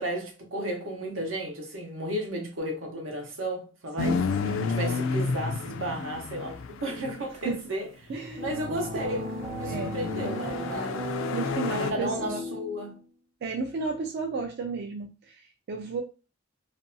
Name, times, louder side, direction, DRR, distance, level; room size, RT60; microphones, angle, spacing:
voice 1, 0.0-4.3 4.6-8.1 8.4-9.2 9.6-11.1 11.8-13.0, right 1 dB, 85° right, 0.8 m, -33 dB
sound 1, 4.0-7.5 8.6-11.9, left 5 dB, 80° left, 0.3 m, -31 dB
voice 2, 4.0-4.7 7.4-7.6 8.1-8.4 9.7-9.9 11.3-12.5 13.4-16.0, right 4 dB, 55° right, 0.3 m, -33 dB
sound 2, 8.4-12.9, equal, 30° right, 0.7 m, -35 dB
2.5 x 2.2 x 2.6 m
head